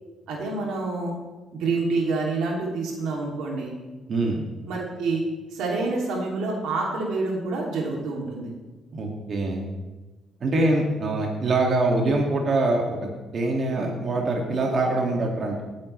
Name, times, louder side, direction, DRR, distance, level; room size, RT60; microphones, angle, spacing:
voice 1, 0.3-1.1 1.5-3.7 4.7-5.2 5.5-8.5, right 3 dB, 85° right, -1 dB, 2.7 m, -27 dB
voice 2, 4.1-4.4 8.9-9.7 10.4-15.6, right 2 dB, 50° right, 0 dB, 2.1 m, -24 dB
18.0 x 9.5 x 3.3 m, 1.2 s
cardioid pair, 90°, 0 cm